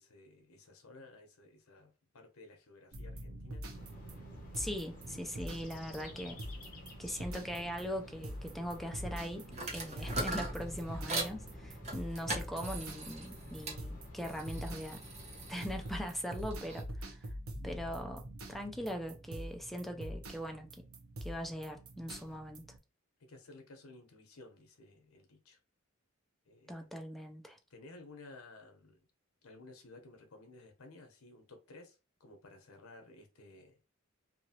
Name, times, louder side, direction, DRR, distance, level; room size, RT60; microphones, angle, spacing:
voice 1, 0.0-3.7 23.2-25.6 26.5-26.9 27.7-29.0 29.4-33.8, left 2 dB, 90° left, 0.8 m, -55 dB
sound 1, 2.9-22.8, equal, 85° right, 0.7 m, -45 dB
sound 2, 3.7-16.0, left 1 dB, 40° left, 1.0 m, -51 dB
voice 2, 4.5-6.4 7.0-15.0 15.5-17.2 17.6-18.2 18.5-20.9 21.2-22.6 26.7-27.6, equal, ahead, 0.4 m, -41 dB
sound 3, 9.5-11.4 11.8-13.8 14.2-16.8, right 2 dB, 35° right, 0.9 m, -41 dB
2.9 x 2.4 x 2.8 m
head